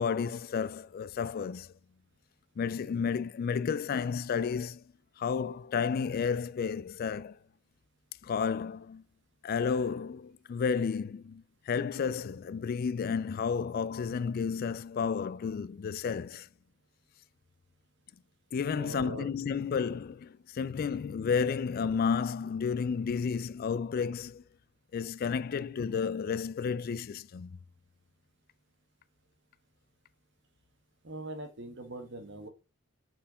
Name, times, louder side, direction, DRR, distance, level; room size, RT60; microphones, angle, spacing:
voice 1, 0.0-1.7 2.6-4.8 5.2-7.4 8.2-9.0 9.4-16.5 18.5-24.4 24.9-27.6, left 6 dB, 50° left, 0.3 m, -32 dB
voice 2, 18.7-19.3 31.0-32.5, right 2 dB, 60° right, 1.5 m, -41 dB
5.5 x 4.5 x 4.9 m
head